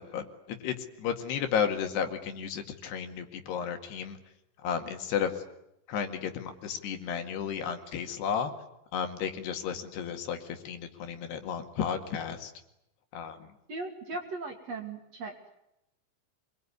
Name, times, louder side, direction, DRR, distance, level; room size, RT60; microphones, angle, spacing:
voice 1, 0.0-4.2 4.6-5.3 5.9-8.5 8.9-12.5 13.1-13.5, left 7 dB, 65° left, 6 dB, 4.0 m, -33 dB
voice 2, 13.7-15.6, right 3 dB, 40° right, 4 dB, 3.1 m, -38 dB
26.0 x 22.5 x 9.7 m, 0.84 s
omnidirectional pair, 5.2 m